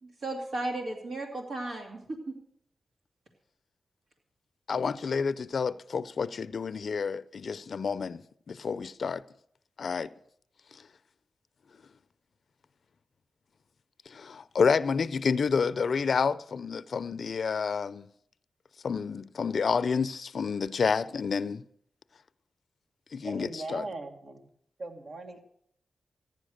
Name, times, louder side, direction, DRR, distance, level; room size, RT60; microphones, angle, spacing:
voice 1, 0.0-2.4, right 2 dB, 80° right, 2.6 m, -35 dB
voice 2, 4.7-8.2 8.5-9.2 9.8-10.1 14.1-18.1 18.8-21.6 23.1-23.8, left 5 dB, 70° left, 0.5 m, -29 dB
voice 3, 23.2-24.4 24.8-25.4, right 2 dB, 60° right, 2.1 m, -39 dB
15.0 x 10.5 x 6.4 m
cardioid pair, 65°, 0 cm